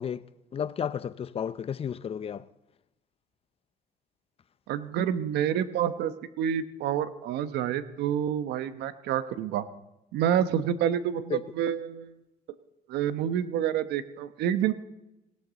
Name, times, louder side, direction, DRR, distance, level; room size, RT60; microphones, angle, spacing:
voice 1, 0.0-2.5 11.3-11.4, left 8 dB, 35° left, 0.6 m, -33 dB
voice 2, 4.7-9.6 10.1-12.1 12.9-14.7, right 9 dB, 80° right, 1.0 m, -28 dB
18.0 x 18.0 x 4.0 m
cardioid pair, 110°, 17 cm